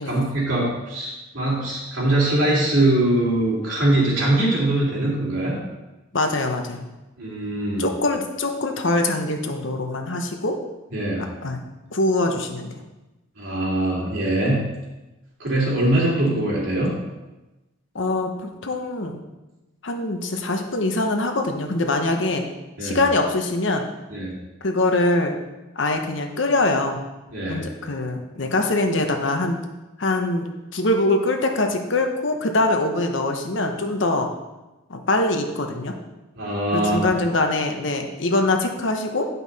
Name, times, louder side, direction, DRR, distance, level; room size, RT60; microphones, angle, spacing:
voice 1, 0.0-5.6 7.2-7.8 10.9-11.3 13.4-14.6 15.4-16.9 22.8-23.0 24.1-24.3 27.3-27.6 36.4-37.0, right 1 dB, 70° right, -5 dB, 2.9 m, -22 dB
voice 2, 6.1-6.9 7.8-10.6 11.4-11.6 11.9-12.7 17.9-19.2 19.8-22.5 22.8-23.9 24.6-25.4 25.8-27.0 27.5-29.6 30.0-34.3 34.9-35.9 36.7-39.2, left 2 dB, 65° left, 4 dB, 0.9 m, -23 dB
9.6 x 5.5 x 4.1 m, 1.1 s
head